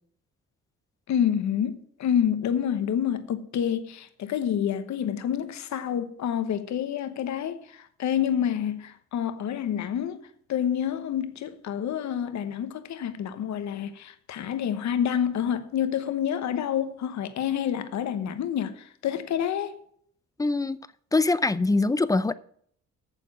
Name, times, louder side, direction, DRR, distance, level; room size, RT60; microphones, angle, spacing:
voice 1, 1.1-19.8, left 9 dB, 65° left, 1.1 m, -28 dB
voice 2, 20.4-20.8 21.1-22.3, left 3 dB, 10° left, 0.5 m, -23 dB
9.0 x 7.0 x 7.4 m
cardioid pair, 90°, 30 cm